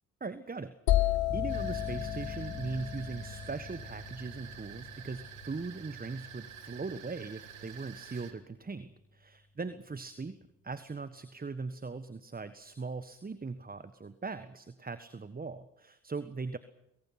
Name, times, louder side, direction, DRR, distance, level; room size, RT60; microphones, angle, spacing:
voice 1, 0.2-10.4 10.6-16.6, right 4 dB, 20° right, 12 dB, 1.4 m, -40 dB
sound 1, 0.9-4.7, left 15 dB, 65° left, 1.2 m, -32 dB
sound 2, 1.3-9.0, left 2 dB, 20° left, 2.0 m, -45 dB
sound 3, 1.5-8.3, right 9 dB, 90° right, 1.8 m, -49 dB
27.5 x 22.0 x 6.0 m, 0.85 s
hypercardioid pair, 45°, 39 cm